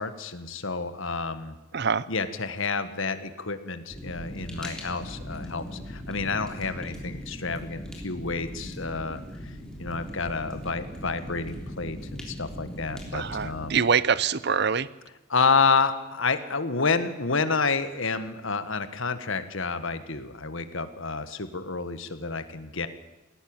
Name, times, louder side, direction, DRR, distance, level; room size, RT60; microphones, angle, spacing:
voice 1, 0.0-1.5 2.1-9.2 9.8-13.8 15.3-22.9, left 4 dB, 65° left, 11 dB, 1.6 m, -29 dB
voice 2, 1.7-2.1 13.1-14.9, right 6 dB, 50° right, 18 dB, 0.7 m, -24 dB
Fire, 3.9-13.8, equal, 5° left, 3.5 m, -39 dB
19.5 x 17.5 x 8.9 m, 1.0 s
head